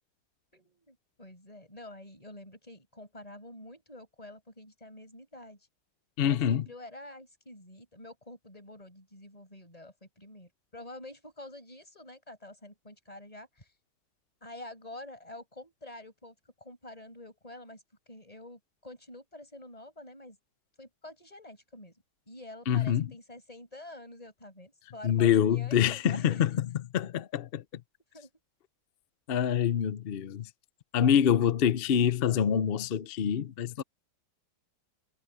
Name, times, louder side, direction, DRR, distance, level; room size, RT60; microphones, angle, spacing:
voice 1, 0.5-5.7 6.2-13.7 14.4-20.4 20.8-21.9 22.3-26.4 28.1-28.3, left 1 dB, 20° left, 8.1 m, -48 dB
voice 2, 6.2-6.7 22.7-23.1 25.0-26.5 26.9-27.8 29.3-30.5 30.9-33.8, left 9 dB, 55° left, 0.6 m, -26 dB
omnidirectional pair, 1.9 m